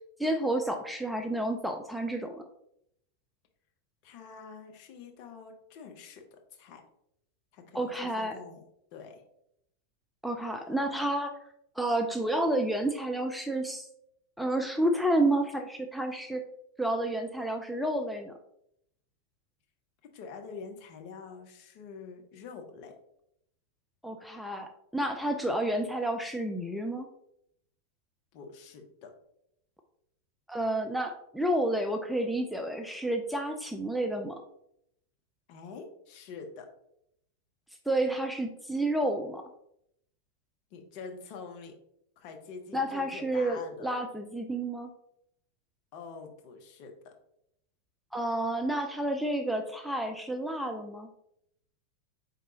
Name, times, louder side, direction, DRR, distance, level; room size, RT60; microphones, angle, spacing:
voice 1, 0.2-2.4 7.7-8.4 10.2-11.3 11.8-13.9 14.4-16.4 16.8-18.3 24.0-27.1 30.5-34.4 37.9-39.4 42.7-44.9 48.1-51.1, right 1 dB, ahead, 3 dB, 0.4 m, -30 dB
voice 2, 4.0-6.8 7.5-7.9 8.2-8.6 8.9-9.2 20.1-22.9 28.3-29.1 35.5-36.7 40.7-41.7 42.2-43.9 45.9-47.1, left 5 dB, 45° left, 3 dB, 0.7 m, -46 dB
4.6 x 3.8 x 2.7 m, 0.76 s
figure-of-eight pair, 90°, 0 cm